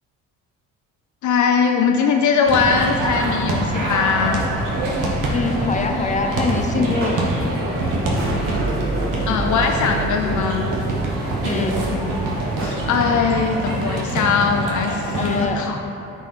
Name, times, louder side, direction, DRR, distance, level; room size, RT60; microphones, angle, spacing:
voice 1, 1.2-4.4 9.3-10.7 12.6-15.8, left 5 dB, 55° left, 4 dB, 0.5 m, -20 dB
sound 1, 2.4-15.4, right 2 dB, 60° right, 1.4 m, -24 dB
voice 2, 5.3-7.1 11.4-11.9 15.1-15.7, left 3 dB, 20° left, 4 dB, 0.7 m, -23 dB
sound 2, 6.8-12.8, right 1 dB, 35° right, 1.3 m, -30 dB
9.2 x 4.7 x 3.1 m, 2.9 s
supercardioid pair, 60°, 35 cm